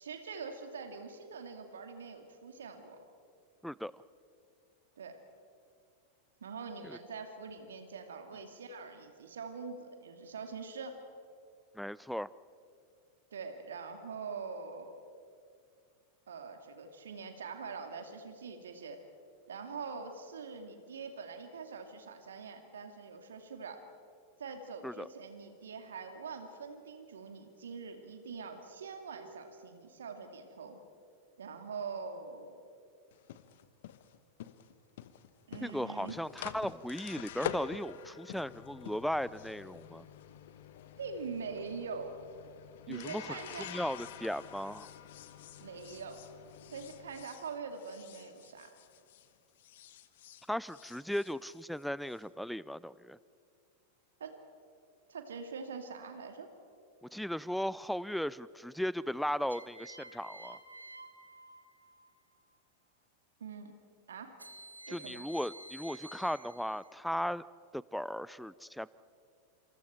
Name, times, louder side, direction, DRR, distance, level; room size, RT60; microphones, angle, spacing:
voice 1, 0.0-3.0 5.0-5.2 6.4-11.0 13.3-15.0 16.3-19.0 19.5-23.8 24.4-30.8 31.4-32.6 35.5-36.2 41.0-42.2 42.9-43.8 45.6-46.2 46.7-48.7 54.2-54.4 55.1-56.5 63.4-63.7 64.1-64.3 64.9-65.3, right 5 dB, 65° right, 6 dB, 2.3 m, -44 dB
voice 2, 3.6-4.0 6.8-7.0 11.7-12.3 24.8-25.1 35.6-40.1 42.9-44.9 50.5-53.2 57.0-60.6 64.9-67.5 67.7-68.9, equal, ahead, 20 dB, 0.5 m, -37 dB
sound 1, 33.1-49.3 49.6-52.2, left 10 dB, 55° left, 1.1 m, -47 dB
sound 2, 56.4-57.0 59.5-62.1 64.4-67.0, right 1 dB, 85° right, 1.6 m, -51 dB
27.5 x 27.5 x 4.5 m, 2.3 s
figure-of-eight pair, 90°, 0 cm